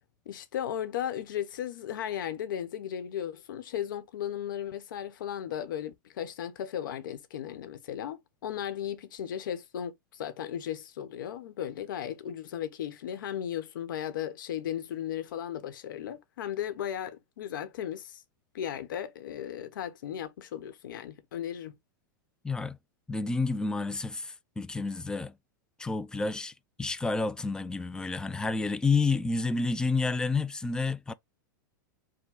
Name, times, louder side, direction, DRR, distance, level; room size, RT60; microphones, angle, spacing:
voice 1, 0.3-18.2 18.5-21.7, left 10 dB, 75° left, 1.0 m, -36 dB
voice 2, 22.4-22.8 23.1-25.3 25.8-26.5 26.8-31.1, left 3 dB, 5° left, 0.4 m, -29 dB
5.0 x 2.2 x 3.7 m
hypercardioid pair, 110°, 11 cm